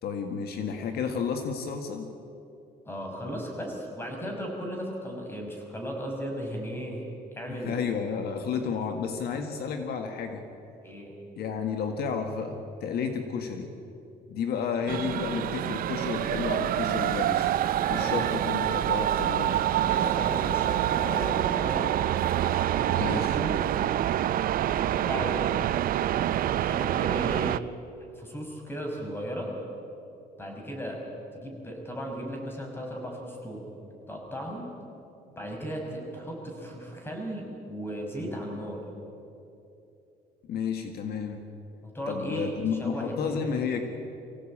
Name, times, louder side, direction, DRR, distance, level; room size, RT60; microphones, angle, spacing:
voice 1, 0.0-2.1 7.5-10.4 11.4-13.7 14.3-17.5 17.9-19.6 23.0-23.4 40.5-41.4 42.1-43.8, left 6 dB, 70° left, 5 dB, 1.9 m, -31 dB
voice 2, 2.9-7.8 10.8-11.1 17.8-18.3 19.8-21.9 22.7-23.6 24.8-25.6 26.5-27.6 28.1-29.5 30.4-31.0 31.3-33.6 34.1-34.7 35.4-38.8 41.8-43.5, equal, 15° left, 1 dB, 5.9 m, -36 dB
sound 1, 14.9-27.6, right 12 dB, 60° right, 0.6 m, -26 dB
25.5 x 16.5 x 8.8 m, 2.8 s
cardioid pair, 110°, 17 cm